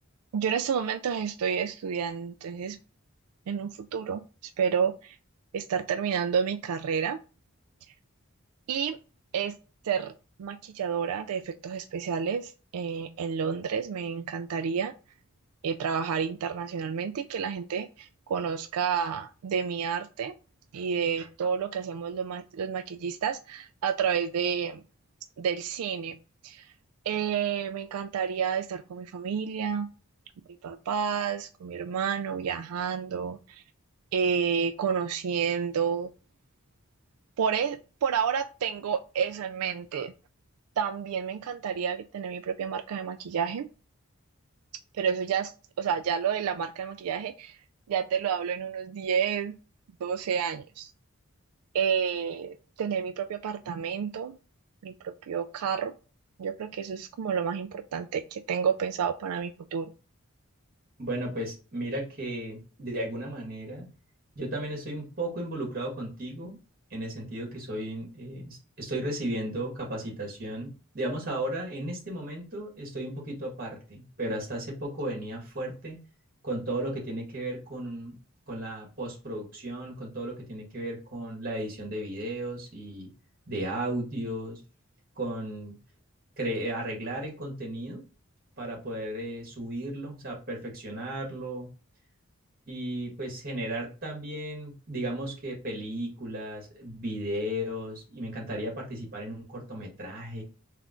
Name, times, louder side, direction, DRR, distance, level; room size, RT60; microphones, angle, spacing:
voice 1, 0.3-2.8 3.5-5.2 5.5-7.2 8.7-9.0 9.3-9.5 9.8-10.1 10.4-14.9 15.6-20.4 20.7-24.8 25.4-26.2 26.4-26.7 27.1-29.9 30.6-33.6 34.1-36.1 37.4-40.1 40.8-43.7 45.0-45.5 45.8-47.6 47.9-49.6 50.0-50.9 51.7-54.3 54.8-55.9 56.4-59.9, right 7 dB, 90° right, 0.3 m, -30 dB
voice 2, 61.0-63.9 64.4-66.6 66.9-76.0 76.4-78.1 78.5-83.1 83.5-84.6 85.2-85.8 86.4-88.0 88.6-91.7 92.7-100.4, right 1 dB, 40° right, 1.7 m, -35 dB
3.6 x 3.3 x 3.7 m
head